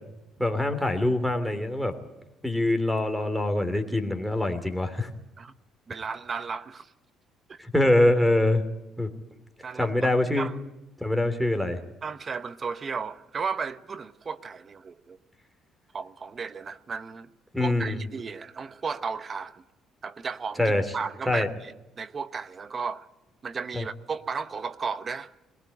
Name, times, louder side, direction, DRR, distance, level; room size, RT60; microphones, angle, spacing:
voice 1, 0.4-2.0 2.4-5.1 7.6-8.6 9.0-9.1 9.8-10.5 11.0-11.8 17.5-18.0 20.6-20.8 21.3-21.5 23.7-23.8, left 1 dB, ahead, 3.0 m, -24 dB
voice 2, 5.9-6.9 7.5-7.6 9.6-10.5 12.0-15.2 15.9-17.3 17.6-19.6 20.0-23.1 23.4-25.3, right 5 dB, 40° right, 0.9 m, -34 dB
21.5 x 18.0 x 9.9 m
cardioid pair, 85°, 0 cm